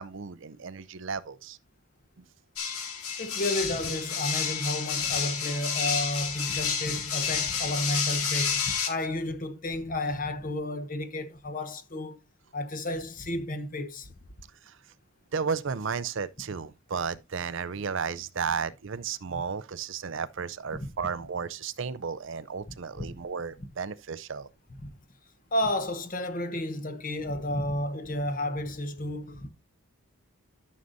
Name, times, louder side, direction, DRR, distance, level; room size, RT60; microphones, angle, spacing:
voice 1, 0.0-1.6 2.2-2.3 14.6-14.8 15.3-24.5, right 6 dB, 60° right, 0.5 m, -33 dB
sound 1, 2.6-8.9, left 7 dB, 90° left, 2.0 m, -30 dB
voice 2, 3.2-12.2 12.5-14.1 20.8-20.9 23.0-23.2 24.8-24.9 25.5-29.5, left 1 dB, 40° left, 1.0 m, -32 dB
13.0 x 6.4 x 2.6 m
head